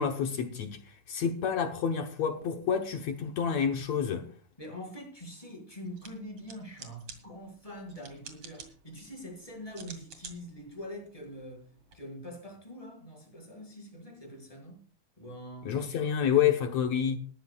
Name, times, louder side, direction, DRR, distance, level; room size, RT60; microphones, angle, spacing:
voice 1, 0.0-4.3 15.7-17.2, left 8 dB, 65° left, 1.8 m, -29 dB
voice 2, 4.6-14.8 15.2-15.8, equal, 10° left, 5.7 m, -44 dB
sound 1, 5.8-11.9, right 5 dB, 45° right, 2.9 m, -52 dB
20.5 x 13.5 x 2.4 m
omnidirectional pair, 4.2 m